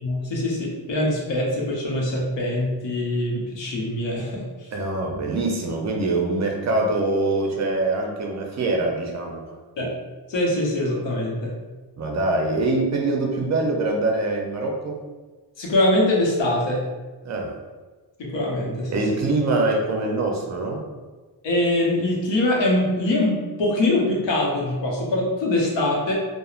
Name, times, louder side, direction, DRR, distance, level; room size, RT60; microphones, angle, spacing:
voice 1, 0.0-4.5 9.8-9.9 10.3-11.5 15.6-16.9 18.2-19.0 21.4-26.1, left 1 dB, 90° left, -3 dB, 0.8 m, -23 dB
voice 2, 4.7-9.4 12.0-15.0 17.2-17.5 18.9-20.8, right 2 dB, 40° right, 1 dB, 0.4 m, -24 dB
3.0 x 2.1 x 2.4 m, 1.3 s
wide cardioid pair, 165°, 43 cm